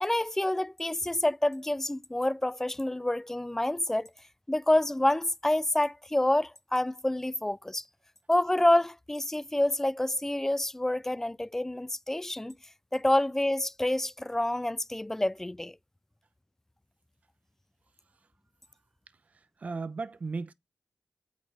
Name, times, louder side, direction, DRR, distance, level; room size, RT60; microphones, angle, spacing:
voice 1, 0.0-4.1 4.5-7.8 8.3-12.5 12.9-15.8, left 1 dB, 15° left, 0.3 m, -28 dB
voice 2, 19.3-20.5, right 4 dB, 55° right, 0.6 m, -36 dB
8.6 x 4.3 x 3.3 m
cardioid pair, 45°, 3 cm